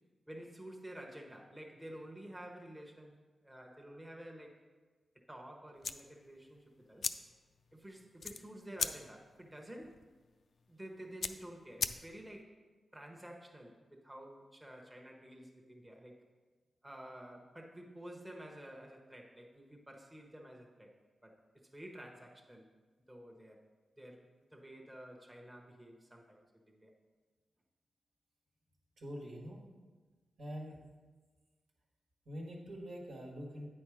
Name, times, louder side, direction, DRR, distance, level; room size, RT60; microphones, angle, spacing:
voice 1, 0.3-3.1 3.4-4.5 5.3-7.1 7.7-10.0 10.7-12.6 12.9-16.2 16.8-20.9 21.2-21.3 21.7-22.6 23.1-23.6 24.0-26.9, right 1 dB, 15° right, 0 dB, 0.9 m, -51 dB
sound 1, 5.8-12.4, left 5 dB, 60° left, 0.3 m, -42 dB
voice 2, 29.0-29.6 30.4-30.8 32.2-33.7, equal, 75° right, -1 dB, 1.6 m, -44 dB
9.0 x 4.4 x 4.8 m, 1.3 s
cardioid pair, 90°, 0 cm